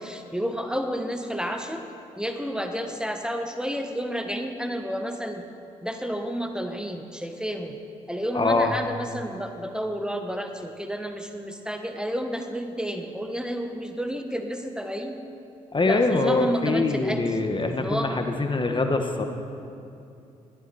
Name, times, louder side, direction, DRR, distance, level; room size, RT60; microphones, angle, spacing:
voice 1, 0.0-1.8 2.2-5.4 5.8-7.8 8.1-15.2 15.8-17.4 17.7-18.2, equal, 5° right, 5 dB, 1.6 m, -31 dB
voice 2, 8.3-8.7 15.7-19.2, left 3 dB, 30° left, 5 dB, 1.6 m, -24 dB
21.0 x 14.0 x 4.4 m, 2.7 s
hypercardioid pair, 40°, 16 cm